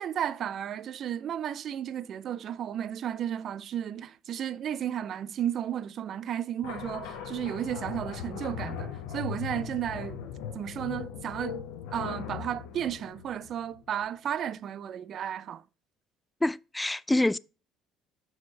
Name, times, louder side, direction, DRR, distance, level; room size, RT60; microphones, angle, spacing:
voice 1, 0.0-10.3 10.5-11.6 11.9-15.6, right 10 dB, 55° right, 0.4 m, -33 dB
sound 1, 6.6-14.0, left 8 dB, 80° left, 1.1 m, -39 dB
voice 2, 16.4-17.4, left 1 dB, 10° left, 0.3 m, -26 dB
6.2 x 4.9 x 4.3 m
hypercardioid pair, 65°, 0 cm